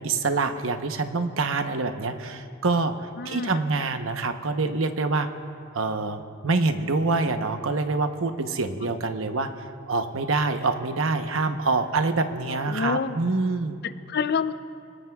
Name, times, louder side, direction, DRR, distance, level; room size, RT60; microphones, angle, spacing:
voice 1, 0.0-5.3 5.7-13.8, right 3 dB, 90° right, 7 dB, 0.9 m, -26 dB
voice 2, 3.2-3.6 12.5-13.2 13.8-14.5, left 5 dB, 50° left, 12 dB, 0.5 m, -28 dB
30.0 x 18.0 x 2.3 m, 2.4 s
head